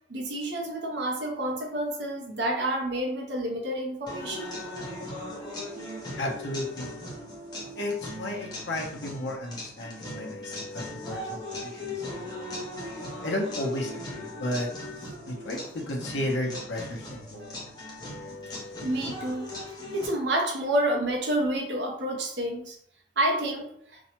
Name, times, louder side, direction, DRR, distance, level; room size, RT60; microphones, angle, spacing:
voice 1, 0.0-4.6 12.3-12.7 18.5-19.5 19.9-22.8 23.2-23.7, right 1 dB, 65° right, 1 dB, 0.6 m, -29 dB
sound 1, 4.1-20.1, left 1 dB, 20° left, 0.6 m, -39 dB
voice 2, 6.2-6.9 7.8-12.6 13.2-14.7 15.2-17.5, left 1 dB, 75° left, 0 dB, 0.6 m, -33 dB
2.6 x 2.1 x 2.8 m, 0.66 s
head